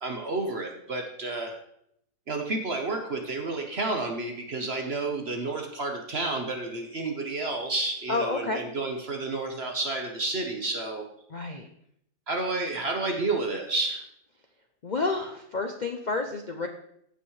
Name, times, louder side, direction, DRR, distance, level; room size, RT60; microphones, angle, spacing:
voice 1, 0.0-1.5 2.3-11.0 12.3-14.0, right 3 dB, 45° right, 2 dB, 1.1 m, -30 dB
voice 2, 8.1-8.6 11.3-11.7 14.8-16.7, left 3 dB, 70° left, 4 dB, 0.4 m, -30 dB
15.0 x 6.1 x 3.2 m, 0.73 s
omnidirectional pair, 1.7 m